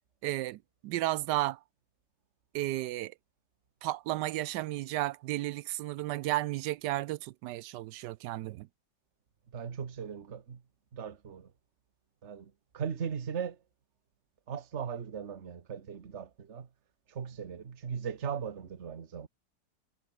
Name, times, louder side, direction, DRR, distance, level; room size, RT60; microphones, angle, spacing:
voice 1, 0.2-1.6 2.5-3.1 3.8-8.7, right 16 dB, 80° right, 1.2 m, -33 dB
voice 2, 9.5-10.6 10.9-11.5 12.2-13.6 14.5-16.7 17.1-19.3, right 7 dB, 40° right, 1.6 m, -38 dB
omnidirectional pair, 1.9 m